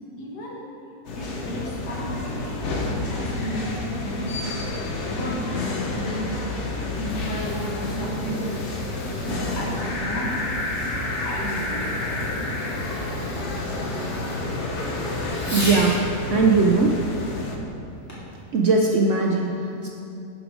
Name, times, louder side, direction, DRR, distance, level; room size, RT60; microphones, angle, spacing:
voice 1, 0.2-0.6 1.1-4.2 5.1-6.5 7.0-8.5 9.2-10.3 11.2-11.8, equal, 75° left, -3 dB, 2.0 m, -33 dB
sound 1, 1.0-17.6, left 2 dB, 50° left, 1.1 m, -29 dB
Fireworks, 6.9-16.1 18.1-18.4 19.1-19.2, left 1 dB, 10° left, 1.8 m, -39 dB
voice 2, 15.5-16.0 16.3-17.0 18.5-19.9, right 3 dB, 65° right, 1 dB, 0.7 m, -20 dB
11.0 x 4.8 x 4.8 m, 2.7 s
omnidirectional pair, 1.8 m